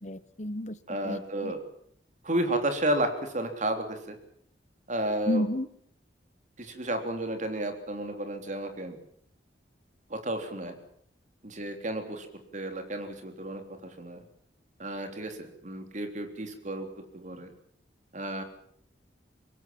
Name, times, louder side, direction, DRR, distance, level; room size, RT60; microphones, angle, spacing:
voice 1, 0.0-0.8 1.0-1.5 5.3-5.7, left 1 dB, 40° left, 15 dB, 1.2 m, -31 dB
voice 2, 0.9-1.6 2.2-4.2 4.9-5.5 6.6-9.0 10.1-10.8 11.4-12.3 12.5-14.2 14.8-16.9 17.1-17.5 18.1-18.4, right 1 dB, 40° right, 6 dB, 3.6 m, -32 dB
25.0 x 21.0 x 7.7 m, 0.66 s
head